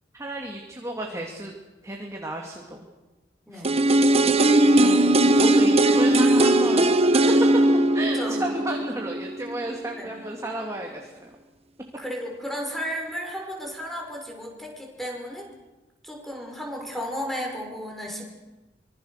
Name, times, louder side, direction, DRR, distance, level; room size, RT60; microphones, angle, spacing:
voice 1, 0.1-1.5 1.8-2.8 3.5-3.6 4.7-7.2 7.7-11.3, right 1 dB, 15° right, 1 dB, 2.5 m, -33 dB
voice 2, 3.5-4.4 8.1-8.4 10.0-10.1 12.0-15.5 16.0-18.2, equal, ahead, 0 dB, 6.1 m, -34 dB
sound 1, 3.6-9.6 9.9-10.0, right 1 dB, 35° right, 1.2 m, -19 dB
25.5 x 24.5 x 6.6 m, 1.1 s
head